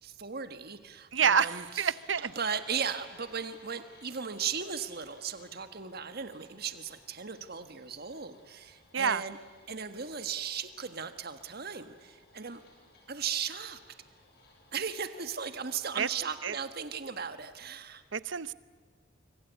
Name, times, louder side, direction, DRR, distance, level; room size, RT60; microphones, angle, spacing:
voice 1, 0.0-1.9 2.2-9.4 9.7-12.6 13.1-13.8 14.7-18.0, right 6 dB, 50° right, 9 dB, 1.5 m, -37 dB
voice 2, 1.1-2.3 8.9-9.2 16.0-16.1 16.4-16.5 18.1-18.5, right 7 dB, 70° right, 17 dB, 0.8 m, -27 dB
sound 1, 1.3-16.2, left 3 dB, 55° left, 7.3 m, -61 dB
25.5 x 24.5 x 8.4 m, 1.5 s
head